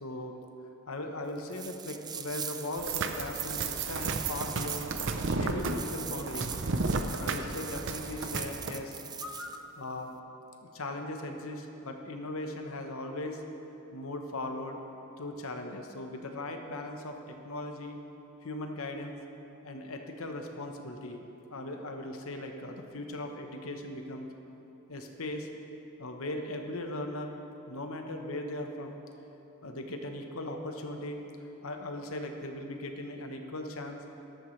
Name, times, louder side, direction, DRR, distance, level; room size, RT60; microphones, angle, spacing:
voice 1, 0.0-0.4 0.9-4.9 5.4-6.5 7.2-10.1 10.7-13.4 13.9-14.8 15.2-18.0 18.4-19.2 19.6-24.3 24.9-25.5 26.0-27.3 27.7-29.0 29.6-31.2 31.6-34.0, left 1 dB, 70° left, 4 dB, 1.1 m, -38 dB
sound 1, 1.5-9.6, right 7 dB, 20° right, 0.4 m, -42 dB
sound 2, 2.8-8.7, right 3 dB, 60° right, 0.7 m, -33 dB
13.5 x 12.5 x 3.3 m, 2.9 s
head